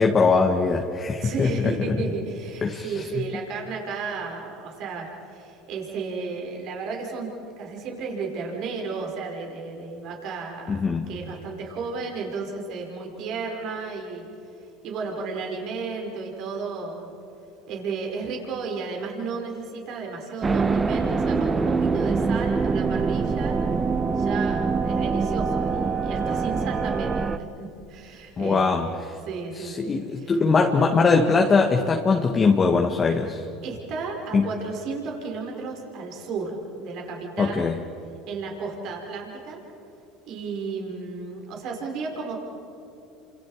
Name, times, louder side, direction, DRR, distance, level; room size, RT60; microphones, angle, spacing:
voice 1, 0.0-2.0 2.6-3.1 10.7-11.1 28.4-29.2 29.6-33.4 34.3-34.5 37.4-37.8, left 4 dB, 30° left, 2 dB, 1.8 m, -21 dB
voice 2, 1.2-7.3 7.6-10.8 11.1-14.3 14.8-17.1 17.7-23.6 24.2-28.8 29.2-30.3 33.6-37.7 38.3-39.6 40.3-42.4, right 4 dB, 60° right, 1 dB, 5.2 m, -33 dB
sound 1, 20.4-27.4, right 4 dB, 25° right, 1.1 m, -24 dB
30.0 x 26.5 x 5.0 m, 2.8 s
supercardioid pair, 90°, 0 cm